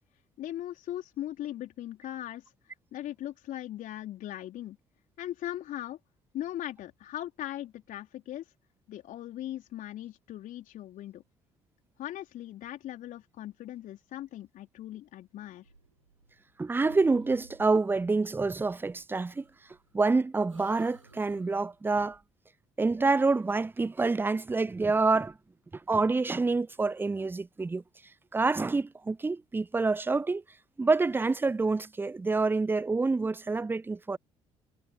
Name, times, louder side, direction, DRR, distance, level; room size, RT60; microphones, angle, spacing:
voice 1, 0.4-4.8 5.2-6.0 6.3-8.4 8.9-11.2 12.0-15.7, left 13 dB, 55° left, 4.1 m, -39 dB
sound 1, 15.6-16.5 16.8-17.9 19.3-20.1 20.5-21.7, right 3 dB, 90° right, 4.0 m, -55 dB
voice 2, 16.6-19.4 19.9-22.2 22.8-25.3 25.9-27.8 28.3-30.4 30.8-34.2, right 3 dB, 15° right, 0.5 m, -27 dB
figure-of-eight pair, 45°, 16 cm